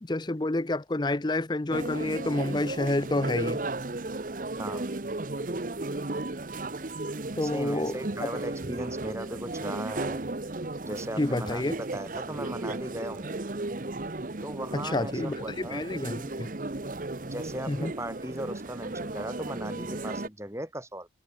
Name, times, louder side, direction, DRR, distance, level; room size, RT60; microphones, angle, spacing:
voice 1, 0.1-3.6 7.4-8.3 11.2-11.7 14.7-16.5 17.7-17.9, left 2 dB, 25° left, 0.6 m, -29 dB
sound 1, 1.7-20.3, right 2 dB, 50° right, 1.0 m, -35 dB
voice 2, 4.5-4.9 7.4-10.2 10.8-13.4 14.4-16.3 17.2-21.1, right 1 dB, 15° right, 3.9 m, -38 dB
head